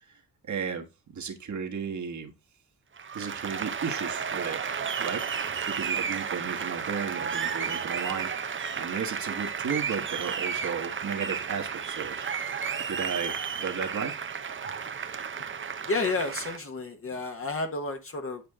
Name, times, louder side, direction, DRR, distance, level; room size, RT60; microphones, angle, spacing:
voice 1, 0.4-0.9 1.1-2.3 3.1-4.6 5.0-12.3 12.9-14.1, right 6 dB, 55° right, 1.6 m, -34 dB
Applause, 3.0-16.6, right 6 dB, 35° right, 0.8 m, -33 dB
voice 2, 15.9-18.4, left 3 dB, 40° left, 1.4 m, -31 dB
8.7 x 5.1 x 3.6 m
cardioid pair, 80°, 35 cm